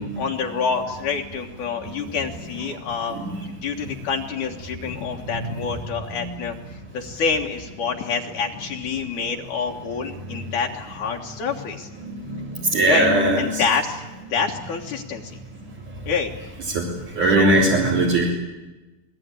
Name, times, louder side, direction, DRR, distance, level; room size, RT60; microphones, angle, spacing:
voice 1, 0.2-3.2 3.6-11.9 12.9-13.1 13.4-14.0 14.3-15.4 16.1-16.3 17.3-17.5, left 5 dB, 65° left, 1 dB, 2.6 m, -27 dB
voice 2, 12.7-13.6 16.7-16.9 17.2-18.3, right 2 dB, 60° right, -4 dB, 5.0 m, -19 dB
27.5 x 20.0 x 8.9 m, 1.1 s
omnidirectional pair, 4.1 m